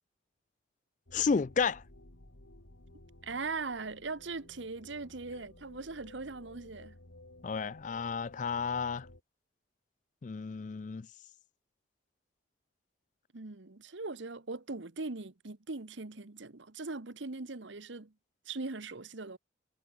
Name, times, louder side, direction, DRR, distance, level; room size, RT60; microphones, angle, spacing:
sound 1, 1.1-9.2, left 1 dB, 85° left, 3.0 m, -56 dB
voice 1, 1.1-1.8 7.4-9.1 10.2-11.0, left 5 dB, 40° left, 0.3 m, -32 dB
voice 2, 3.2-7.0 13.3-18.1 18.5-19.4, right 3 dB, 70° right, 1.2 m, -40 dB
head